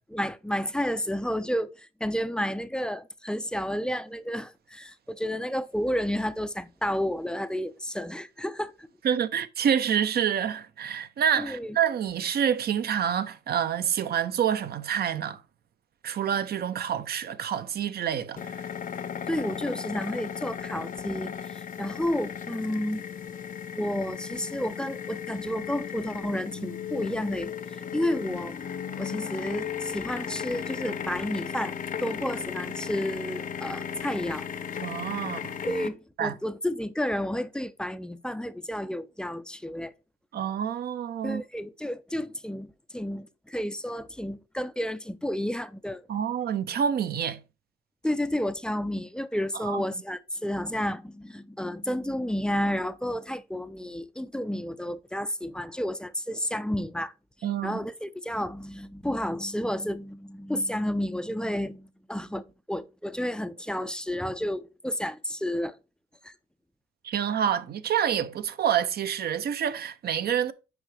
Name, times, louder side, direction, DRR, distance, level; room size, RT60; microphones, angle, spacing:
voice 1, 0.1-8.9 11.4-11.8 19.3-23.0 23.8-28.6 29.0-34.5 35.6-39.9 41.2-46.0 48.0-57.1 57.6-65.8 66.2-66.3, equal, 5° left, 0.4 m, -31 dB
voice 2, 9.0-15.4 16.0-18.5 34.8-35.6 36.2-36.3 40.3-41.4 46.1-47.4 49.6-49.8 57.4-57.8 67.0-70.5, right 8 dB, 55° right, 0.6 m, -27 dB
sound 1, 18.4-35.9, left 8 dB, 45° left, 0.6 m, -36 dB
6.2 x 4.7 x 3.2 m
cardioid pair, 90°, 20 cm